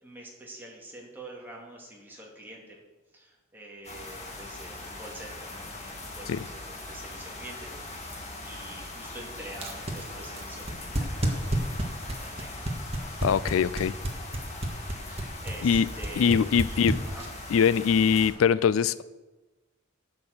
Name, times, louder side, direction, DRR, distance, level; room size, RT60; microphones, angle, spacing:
voice 1, 0.0-2.8 3.1-8.1 8.4-11.4 12.1-12.8 15.1-16.8 17.1-17.2, right 1 dB, 10° right, -2 dB, 2.3 m, -46 dB
sound 1, 3.8-18.3, left 2 dB, 35° left, 2.1 m, -41 dB
sound 2, 9.5-17.5, right 1 dB, 30° right, 1.6 m, -30 dB
voice 2, 13.2-13.9 15.6-15.9 16.2-16.9 17.5-19.0, left 7 dB, 80° left, 18 dB, 0.4 m, -22 dB
10.5 x 6.1 x 7.8 m, 1.2 s
head